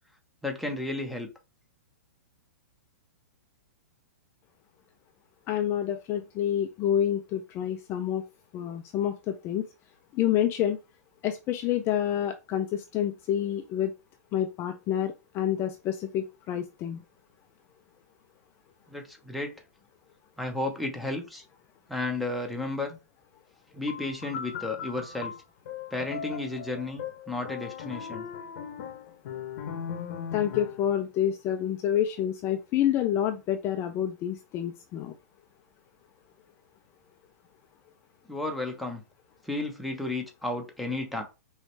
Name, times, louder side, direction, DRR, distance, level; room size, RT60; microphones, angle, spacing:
voice 1, 0.4-1.3 18.9-19.5 20.4-21.4 21.9-23.0 23.7-25.3 25.9-28.3 38.3-39.0 39.4-41.2, left 2 dB, ahead, 3 dB, 0.9 m, -33 dB
voice 2, 5.5-8.2 8.5-9.7 10.1-10.8 11.2-13.9 14.3-17.0 30.3-35.1, left 10 dB, 30° left, 7 dB, 0.4 m, -28 dB
sound 1, 23.9-30.9, left 8 dB, 55° left, 0.8 m, -38 dB
4.8 x 3.2 x 3.2 m, 0.28 s
hypercardioid pair, 135°, 9 cm